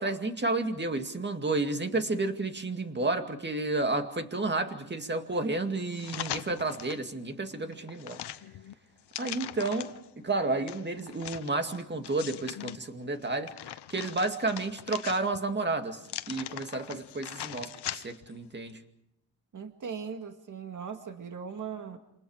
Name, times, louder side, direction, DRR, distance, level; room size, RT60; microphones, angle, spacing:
voice 1, 0.0-8.2 9.2-16.0 16.3-18.8, right 2 dB, 25° right, 6 dB, 2.3 m, -31 dB
sound 1, 5.9-7.1 7.5-10.1 10.7-12.8 13.2-15.5 16.0-18.3 18.7-18.8, left 11 dB, 80° left, 0.9 m, -41 dB
voice 2, 19.5-22.0, right 6 dB, 50° right, 6 dB, 2.0 m, -39 dB
28.5 x 26.5 x 4.9 m, 0.76 s
cardioid pair, 100°, 40 cm